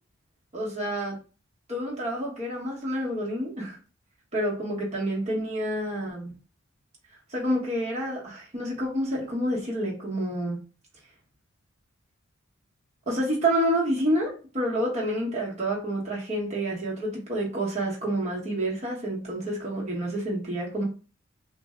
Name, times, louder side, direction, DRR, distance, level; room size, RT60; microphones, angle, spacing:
voice 1, 0.5-1.2 1.7-3.8 4.3-6.3 7.3-10.6 13.1-20.8, right 1 dB, 30° right, 1.2 m, -28 dB
3.2 x 2.5 x 3.6 m
head